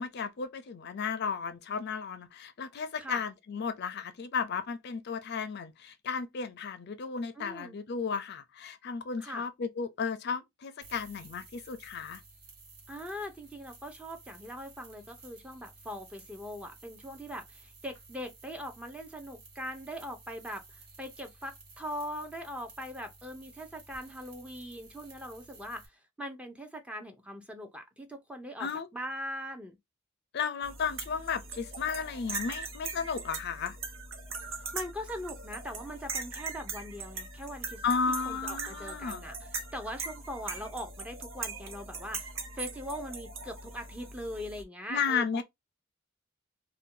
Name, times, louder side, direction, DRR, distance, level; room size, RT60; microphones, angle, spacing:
voice 1, 0.0-12.2 28.6-28.9 30.3-33.8 37.8-39.2 44.9-45.4, left 5 dB, 55° left, 0.4 m, -34 dB
voice 2, 7.3-7.8 9.2-9.4 12.9-25.9 26.2-29.8 34.7-38.0 38.2-42.3 42.6-45.4, equal, 5° right, 0.6 m, -41 dB
sound 1, 10.8-25.9, right 3 dB, 50° right, 1.0 m, -54 dB
sound 2, 30.6-44.6, right 4 dB, 80° right, 0.9 m, -40 dB
2.6 x 2.2 x 3.7 m
head